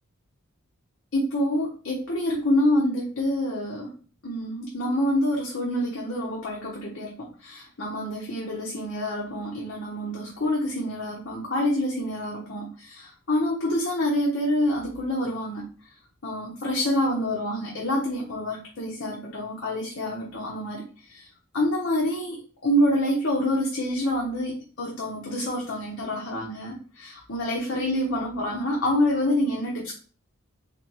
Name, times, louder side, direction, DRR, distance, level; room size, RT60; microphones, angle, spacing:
voice 1, 1.1-3.9 4.2-7.1 7.4-15.6 16.2-20.8 21.1-21.2 21.5-22.4 22.6-29.9, left 1 dB, 55° left, -4 dB, 0.9 m, -27 dB
3.4 x 3.3 x 2.9 m, 0.39 s
head